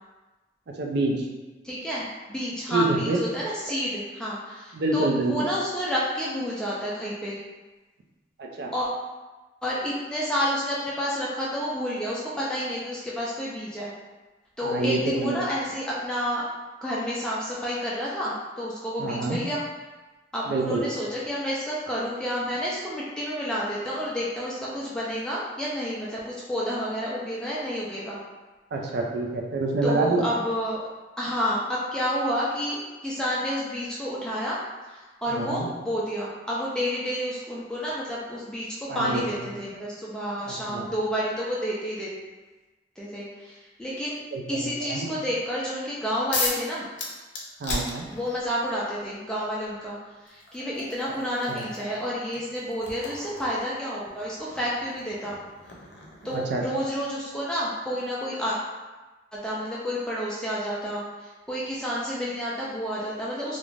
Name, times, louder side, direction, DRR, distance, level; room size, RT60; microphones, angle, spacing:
voice 1, 0.7-1.3 2.7-3.2 4.7-5.5 8.4-8.7 14.6-15.4 19.0-19.4 20.5-20.8 28.7-30.2 35.3-35.7 38.9-39.2 40.4-40.9 44.3-45.1 47.6-48.1 51.5-51.7 56.3-56.6, right 2 dB, 65° right, 0 dB, 0.4 m, -27 dB
voice 2, 1.6-7.4 8.7-8.9 9.6-13.9 14.6-16.4 16.8-19.6 20.3-28.2 29.8-30.8 31.2-34.6 34.9-42.1 43.0-44.2 44.5-46.8 48.1-50.0 50.2-55.4 56.2-58.6 59.3-63.6, equal, 5° left, -7 dB, 0.3 m, -30 dB
sound 1, 46.3-46.7 47.0-48.5 49.6-49.7 50.3-56.9, left 3 dB, 90° left, 0.5 m, -36 dB
2.4 x 2.1 x 3.1 m, 1.2 s
head